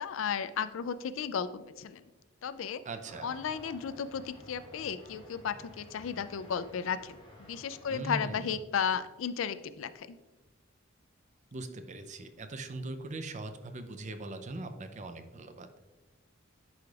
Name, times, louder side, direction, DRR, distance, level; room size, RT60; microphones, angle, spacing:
voice 1, 0.0-2.0 2.4-2.8 3.2-10.2, left 7 dB, 75° left, 13 dB, 0.4 m, -34 dB
voice 2, 2.8-3.3 7.9-8.6 11.5-15.7, right 2 dB, 40° right, 8 dB, 0.5 m, -40 dB
sound 1, 3.1-8.4, left 1 dB, 25° left, 1.1 m, -53 dB
10.5 x 4.9 x 2.4 m, 1.1 s
head